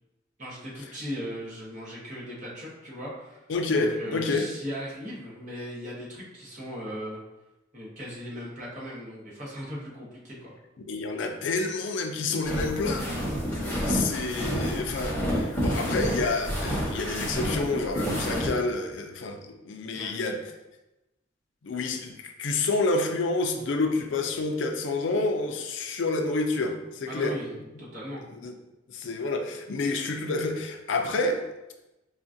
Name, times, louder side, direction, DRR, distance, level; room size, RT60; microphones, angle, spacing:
voice 1, 0.4-3.4 3.7-7.2 7.7-10.5 19.9-20.1 27.1-28.2, equal, 45° right, -6 dB, 1.2 m, -38 dB
voice 2, 3.5-4.5 10.9-13.1 13.6-20.5 21.6-27.3 28.3-28.5 28.9-31.4, left 3 dB, 70° left, 5 dB, 0.4 m, -28 dB
sound 1, 12.4-18.5, equal, 10° left, 1.1 m, -29 dB
4.8 x 2.4 x 2.6 m, 1.0 s
head